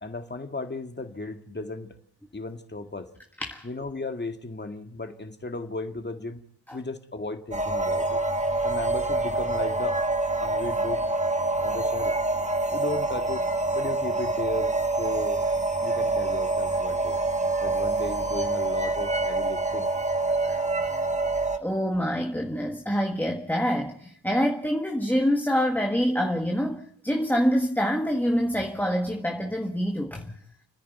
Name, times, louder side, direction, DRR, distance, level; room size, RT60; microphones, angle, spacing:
voice 1, 0.0-1.9 2.3-3.1 3.6-6.4 6.7-8.2 8.6-10.0 10.4-11.0 11.6-12.1 12.7-13.4 13.7-14.7 15.0-15.4 15.8-17.2 17.6-19.9, left 2 dB, 25° left, 1.9 m, -35 dB
sound 1, 7.5-21.6, right 2 dB, 15° right, 1.5 m, -26 dB
voice 2, 21.6-30.3, equal, 5° left, 1.6 m, -26 dB
29.5 x 10.0 x 9.4 m
wide cardioid pair, 85°, 39 cm